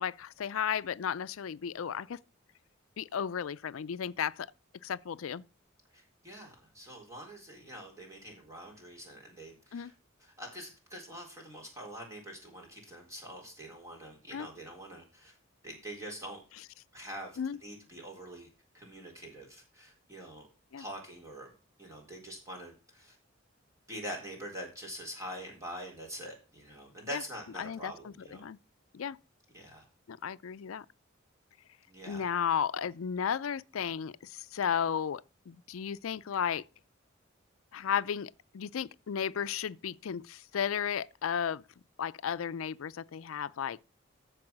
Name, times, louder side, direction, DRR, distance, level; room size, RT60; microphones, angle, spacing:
voice 1, 0.0-2.2 3.0-4.5 4.8-5.4 9.7-9.9 14.3-14.5 17.4-17.6 20.7-20.8 27.1-27.2 27.6-28.6 28.9-29.2 30.1-30.9 32.0-36.7 37.7-41.6 42.0-43.8, left 8 dB, 90° left, 0.4 m, -34 dB
voice 2, 5.9-9.9 10.2-15.4 15.6-16.4 16.9-18.5 18.7-20.5 20.8-21.5 21.8-23.2 23.9-28.4 29.5-29.8 31.9-32.3, right 1 dB, 15° right, 4.1 m, -45 dB
14.0 x 4.8 x 6.0 m
head